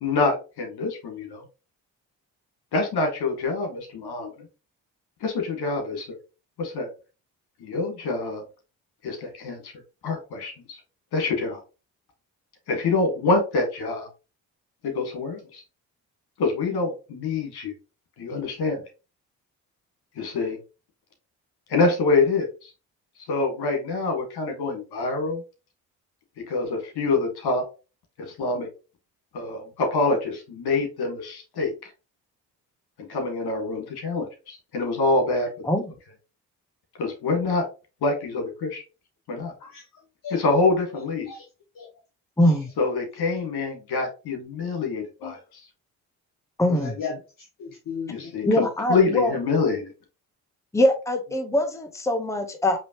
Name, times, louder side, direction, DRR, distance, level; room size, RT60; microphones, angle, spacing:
voice 1, 0.0-1.4 2.7-4.3 5.2-6.1 6.6-6.9 7.6-8.4 9.0-9.7 10.0-10.8 11.1-11.6 12.7-14.1 14.8-15.6 16.4-17.7 18.2-18.8 20.2-20.6 21.7-22.7 23.3-25.4 26.5-27.6 28.4-28.7 29.3-31.9 33.1-35.5 37.0-37.6 38.0-38.8 39.3-39.5 40.3-41.3 42.8-45.4 48.1-49.9, left 3 dB, 70° left, 3 dB, 2.0 m, -25 dB
voice 2, 39.6-40.4 40.9-41.9 42.4-42.7 43.3-43.4 44.5-44.6 45.2-45.4 46.7-48.6, left 6 dB, 50° left, 1 dB, 1.2 m, -37 dB
voice 3, 42.4-42.7 46.6-46.9 48.5-49.3 50.7-52.8, left 1 dB, 5° left, 5 dB, 1.0 m, -22 dB
5.0 x 3.2 x 3.0 m, 0.31 s
supercardioid pair, 55°, 40 cm